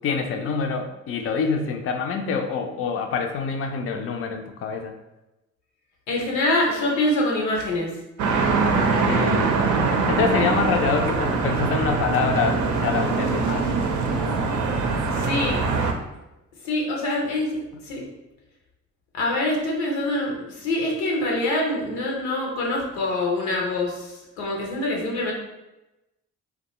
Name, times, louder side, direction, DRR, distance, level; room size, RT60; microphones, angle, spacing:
voice 1, 0.0-4.9 9.0-9.6 10.1-13.9, left 5 dB, 40° left, 4 dB, 0.4 m, -26 dB
voice 2, 6.1-7.9 15.1-15.6 16.6-17.6 17.9-18.0 19.1-25.3, left 1 dB, 85° left, -1 dB, 0.6 m, -25 dB
sound 1, 8.2-15.9, right 4 dB, 60° right, 0.5 m, -23 dB
2.3 x 2.2 x 2.9 m, 0.98 s
hypercardioid pair, 45°, 35 cm